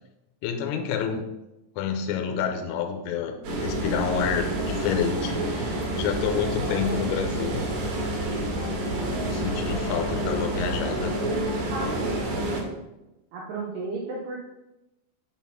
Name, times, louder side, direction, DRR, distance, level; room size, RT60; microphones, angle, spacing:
voice 1, 0.4-1.2 1.8-3.4 3.6-7.6 9.3-11.1, left 7 dB, 85° left, 5 dB, 3.3 m, -28 dB
sound 1, 3.4-12.6, right 1 dB, 60° right, 2.7 m, -28 dB
voice 2, 11.3-12.6 13.3-14.4, right 3 dB, 90° right, -2 dB, 2.4 m, -34 dB
7.9 x 4.2 x 5.8 m, 0.95 s
omnidirectional pair, 5.9 m